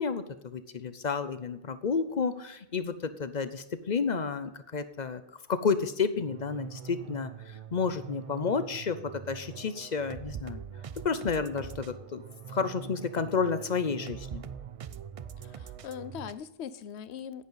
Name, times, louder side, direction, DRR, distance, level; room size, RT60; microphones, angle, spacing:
voice 1, 0.0-5.2 5.5-10.6 11.0-12.2 12.5-14.5, left 5 dB, 45° left, 0.7 m, -31 dB
sound 1, 6.2-16.3, right 7 dB, 55° right, 0.3 m, -43 dB
voice 2, 15.4-17.4, left 8 dB, 80° left, 0.9 m, -41 dB
10.5 x 9.6 x 4.0 m
omnidirectional pair, 1.1 m